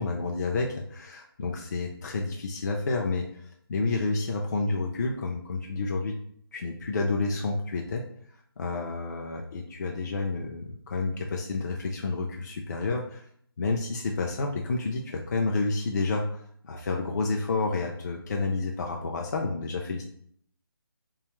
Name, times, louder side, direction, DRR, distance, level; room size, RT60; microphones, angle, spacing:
voice 1, 0.0-6.2 6.5-8.0 8.6-13.2 13.6-20.0, left 3 dB, 45° left, 1 dB, 0.4 m, -30 dB
2.8 x 2.3 x 2.9 m, 0.64 s
figure-of-eight pair, 160°, 13 cm